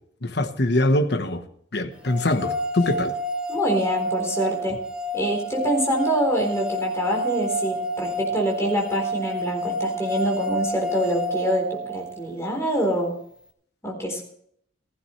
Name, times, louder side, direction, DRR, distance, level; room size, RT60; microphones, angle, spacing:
voice 1, 0.2-1.4 1.7-3.1, left 1 dB, 60° left, 1.2 m, -23 dB
sound 1, 2.1-12.2, right 1 dB, 5° right, 1.1 m, -29 dB
voice 2, 3.5-4.8 5.1-13.1 13.8-14.2, equal, 15° left, 4.0 m, -25 dB
15.5 x 15.0 x 3.3 m
head